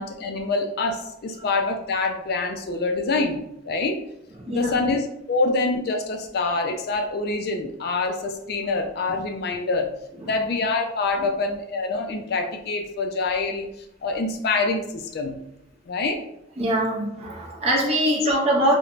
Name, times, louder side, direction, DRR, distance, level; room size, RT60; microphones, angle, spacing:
voice 1, 0.0-4.0 4.5-9.9 10.2-13.7 14.0-15.4 15.9-16.2, left 3 dB, 55° left, 4 dB, 0.3 m, -26 dB
voice 2, 4.4-4.9 10.2-10.3 11.2-11.3 16.6-18.8, right 1 dB, 30° right, -1 dB, 0.5 m, -23 dB
3.1 x 2.1 x 2.4 m, 0.79 s
head